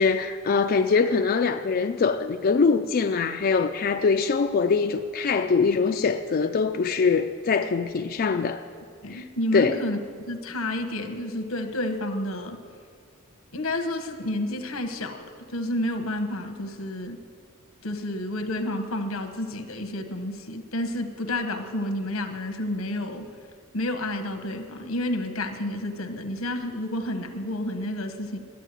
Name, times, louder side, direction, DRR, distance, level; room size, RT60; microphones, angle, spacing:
voice 1, 0.0-8.6 9.1-9.3 9.5-9.8, left 5 dB, 45° left, 5 dB, 0.4 m, -23 dB
voice 2, 9.0-12.6 13.5-15.2 15.5-17.2 17.8-23.3 23.7-28.4, left 1 dB, 90° left, 6 dB, 1.2 m, -30 dB
11.0 x 8.3 x 9.1 m, 2.1 s
head